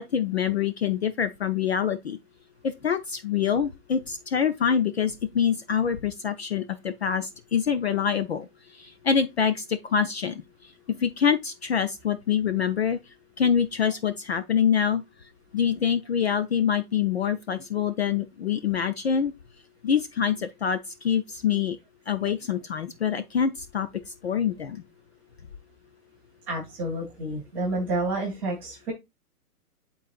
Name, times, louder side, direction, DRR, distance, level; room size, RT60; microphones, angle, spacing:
voice 1, 0.0-2.2 2.8-8.5 8.8-10.4 10.9-13.0 13.4-15.0 15.5-19.3 19.8-20.8 21.0-21.8 22.1-23.9 24.2-24.8, left 7 dB, 45° left, 0.4 m, -25 dB
voice 2, 26.5-28.9, right 2 dB, 5° right, 0.6 m, -29 dB
10.0 x 4.0 x 2.3 m
hypercardioid pair, 165°, 46 cm